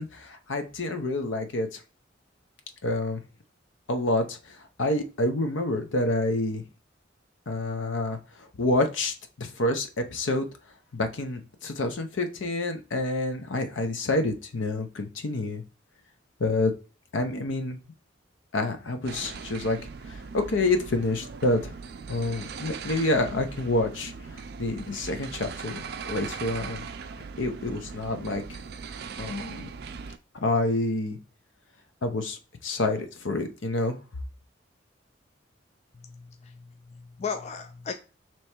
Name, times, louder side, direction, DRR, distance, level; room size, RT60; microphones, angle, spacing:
voice 1, 0.0-1.8 2.8-3.2 3.9-4.4 4.8-6.6 7.5-8.2 8.6-10.5 10.9-15.6 16.4-16.7 17.1-17.8 18.5-19.8 20.1-21.7 22.1-26.8 27.4-28.6 29.2-29.7 30.4-31.2 32.0-34.0, left 2 dB, 80° left, 7 dB, 0.7 m, -28 dB
sound 1, 19.1-30.2, right 5 dB, 50° right, 0.4 m, -39 dB
voice 2, 35.9-37.9, left 6 dB, 35° left, 6 dB, 0.3 m, -37 dB
3.2 x 3.0 x 4.4 m, 0.35 s
head